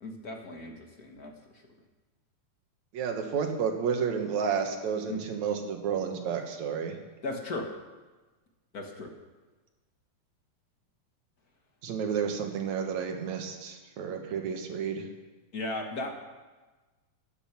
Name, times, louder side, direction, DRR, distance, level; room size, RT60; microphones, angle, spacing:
voice 1, 0.0-1.3 5.1-5.2 7.2-7.7 8.7-9.1 15.5-16.1, left 2 dB, 40° left, 3 dB, 1.4 m, -36 dB
voice 2, 2.9-7.0 11.8-15.1, right 6 dB, 75° right, 4 dB, 2.7 m, -31 dB
15.0 x 10.5 x 6.0 m, 1.2 s
omnidirectional pair, 3.3 m